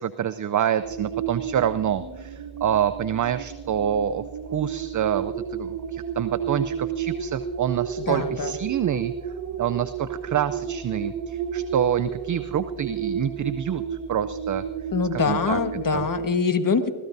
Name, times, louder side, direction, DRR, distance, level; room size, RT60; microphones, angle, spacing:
voice 1, 0.0-9.1 9.6-14.6 15.1-15.6 15.9-16.0, right 9 dB, 40° right, 12 dB, 0.5 m, -27 dB
sound 1, 0.8-16.3, right 8 dB, 55° right, 1.4 m, -32 dB
voice 2, 8.1-8.6 14.9-16.9, left 5 dB, 40° left, 8 dB, 1.5 m, -24 dB
22.5 x 15.5 x 2.7 m, 1.2 s
cardioid pair, 65°, 50 cm